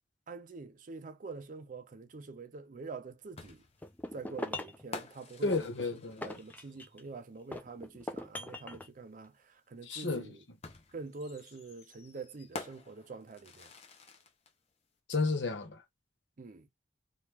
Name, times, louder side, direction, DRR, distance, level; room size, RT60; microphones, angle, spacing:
voice 1, 0.3-3.6 4.1-5.7 6.2-10.3 10.9-13.7 16.4-16.7, right 4 dB, 45° right, 0.5 m, -46 dB
sound 1, 3.4-7.0 8.5-8.6 10.6-14.5, left 3 dB, 35° left, 0.8 m, -49 dB
sound 2, 3.8-4.8 5.5-7.1 7.5-8.9, left 1 dB, 10° left, 0.4 m, -41 dB
voice 2, 5.4-6.4 9.8-10.4 15.1-15.8, left 3 dB, 75° left, 1.0 m, -32 dB
2.9 x 2.3 x 3.4 m
head